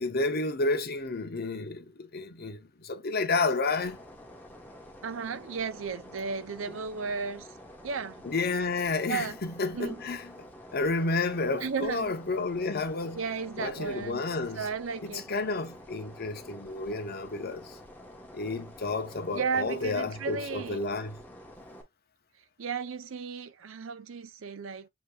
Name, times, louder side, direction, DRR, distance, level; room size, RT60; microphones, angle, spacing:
voice 1, 0.0-4.0 8.2-10.3 10.7-13.2 13.6-14.7 15.1-17.8 18.3-21.2, left 3 dB, 50° left, 0.8 m, -31 dB
sound 1, 3.8-21.8, left 1 dB, 10° left, 1.1 m, -49 dB
voice 2, 5.0-7.5 7.8-8.2 9.1-9.4 9.7-10.0 11.6-12.1 13.1-14.2 14.6-15.3 19.3-20.8 22.6-24.9, right 5 dB, 85° right, 0.6 m, -34 dB
6.8 x 3.0 x 2.3 m
head